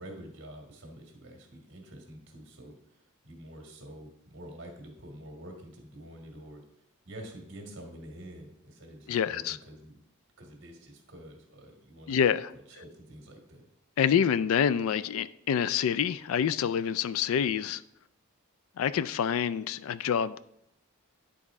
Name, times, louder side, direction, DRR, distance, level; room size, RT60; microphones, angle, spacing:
voice 1, 0.0-10.0 10.4-12.2 12.5-13.6, right 1 dB, 60° right, 1.7 m, -47 dB
voice 2, 9.1-9.6 12.1-12.5 14.0-17.8 18.8-20.4, left 8 dB, 70° left, 0.3 m, -27 dB
10.0 x 4.2 x 3.6 m
head